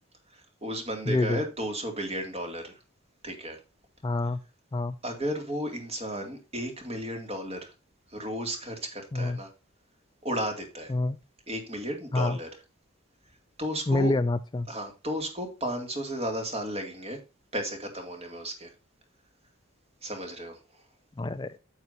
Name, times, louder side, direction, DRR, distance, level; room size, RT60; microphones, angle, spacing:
voice 1, 0.3-2.8 3.2-3.6 5.0-7.7 8.1-9.5 10.2-10.9 11.5-12.5 13.6-14.1 14.7-17.2 17.5-18.7 20.0-20.6, equal, 30° right, 2.3 m, -34 dB
voice 2, 1.1-1.4 4.0-4.4 4.7-4.9 9.1-9.4 10.9-11.2 12.1-12.4 13.9-14.7 21.2-21.6, left 2 dB, 20° left, 0.3 m, -27 dB
8.9 x 8.1 x 2.7 m
head